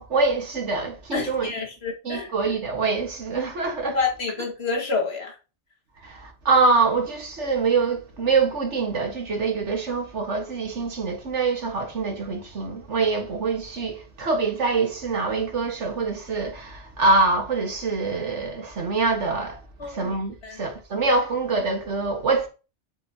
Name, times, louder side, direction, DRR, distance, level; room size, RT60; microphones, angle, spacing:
voice 1, 0.0-1.5 2.0-4.0 6.0-22.5, right 4 dB, 75° right, 2.0 m, -25 dB
voice 2, 1.1-2.3 3.9-5.4 19.8-20.2 20.4-20.6, left 4 dB, 60° left, 2.3 m, -28 dB
8.1 x 7.2 x 2.9 m
omnidirectional pair, 1.2 m